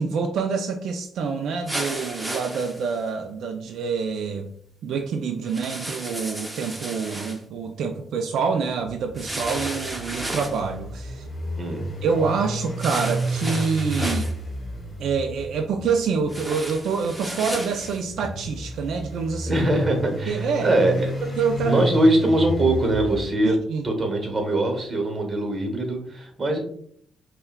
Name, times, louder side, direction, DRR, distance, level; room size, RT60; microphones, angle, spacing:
voice 1, 0.0-4.5 4.8-11.3 12.0-14.3 15.0-19.6 20.3-20.7 21.2-21.9 23.4-23.8, right 5 dB, 75° right, 4 dB, 0.3 m, -26 dB
sound 1, 1.7-3.0 5.5-7.4 9.1-10.6 12.8-14.3 16.3-18.0, right 1 dB, 10° right, 0.7 m, -33 dB
sound 2, 9.0-23.3, right 1 dB, 25° left, 1.4 m, -32 dB
voice 2, 11.6-11.9 19.5-21.1 21.6-23.5 23.8-26.6, right 1 dB, 30° right, 3 dB, 1.0 m, -22 dB
5.5 x 2.2 x 2.2 m, 0.64 s
cardioid pair, 90°, 0 cm